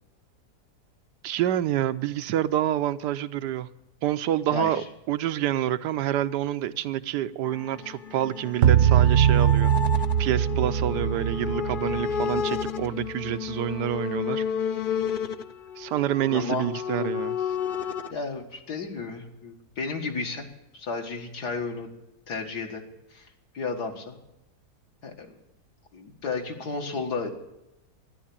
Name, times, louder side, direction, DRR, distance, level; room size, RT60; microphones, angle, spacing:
voice 1, 1.2-3.7 4.0-9.7 10.2-14.4 15.8-17.3, right 12 dB, 85° right, 1.3 m, -27 dB
voice 2, 4.5-4.8 7.8-7.9 8.2-8.3 16.3-16.7 17.0-17.1 18.1-20.5 20.7-21.9 22.3-22.8 23.1-23.3 23.5-24.2 25.0-25.3 25.9-27.3, left 4 dB, 75° left, 2.4 m, -33 dB
sound 1, 7.5-18.1, left 7 dB, 55° left, 0.6 m, -32 dB
sound 2, 8.6-13.1, right 10 dB, 65° right, 0.9 m, -22 dB
12.5 x 11.0 x 8.6 m
omnidirectional pair, 1.7 m